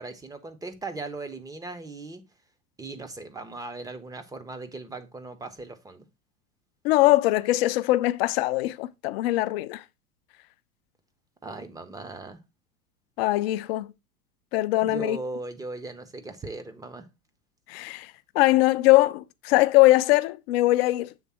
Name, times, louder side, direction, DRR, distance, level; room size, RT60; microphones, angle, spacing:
voice 1, 0.0-2.2 2.8-6.0 11.4-12.4 14.8-17.1, right 3 dB, 10° right, 0.6 m, -38 dB
voice 2, 6.8-9.8 13.2-13.9 14.5-15.2 17.7-21.1, left 18 dB, 45° left, 0.5 m, -21 dB
7.3 x 3.3 x 4.2 m
figure-of-eight pair, 90°, 43 cm